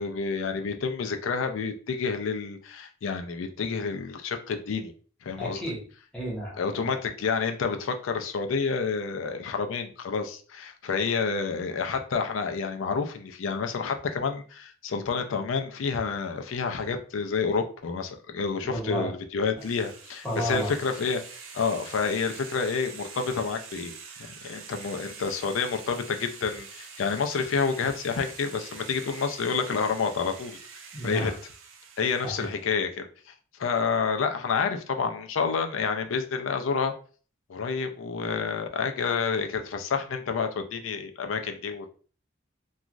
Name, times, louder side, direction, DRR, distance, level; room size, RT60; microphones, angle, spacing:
voice 1, 0.0-4.9 5.2-5.8 6.6-21.2 21.5-30.6 31.0-31.3 32.0-33.3 33.6-36.9 37.5-41.9, left 5 dB, 70° left, 6 dB, 0.4 m, -29 dB
voice 2, 5.4-5.8 6.1-6.9 18.6-19.1 20.2-20.7 30.9-31.4 32.2-32.5, equal, 5° left, -5 dB, 0.8 m, -32 dB
sound 1, 19.6-32.6, right 6 dB, 75° right, 0.5 m, -45 dB
2.9 x 2.3 x 2.4 m, 0.41 s
head